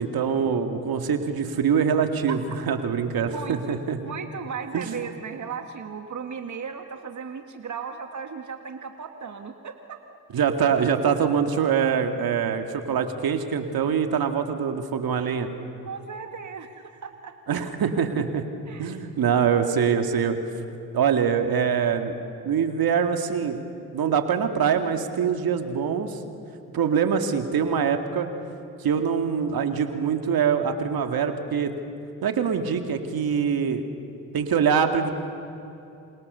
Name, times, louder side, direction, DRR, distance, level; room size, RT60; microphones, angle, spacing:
voice 1, 0.0-4.0 4.7-5.0 10.3-15.5 17.5-18.4 18.8-20.4 20.9-22.2 22.4-23.6 23.9-26.2 26.7-28.3 28.8-31.7 32.2-33.8 34.3-35.1, right 7 dB, 70° right, 6 dB, 2.3 m, -24 dB
voice 2, 3.2-10.0 15.8-17.6 18.7-19.3, right 6 dB, 50° right, 6 dB, 1.8 m, -36 dB
27.5 x 27.0 x 6.9 m, 2.8 s
supercardioid pair, 50°, 38 cm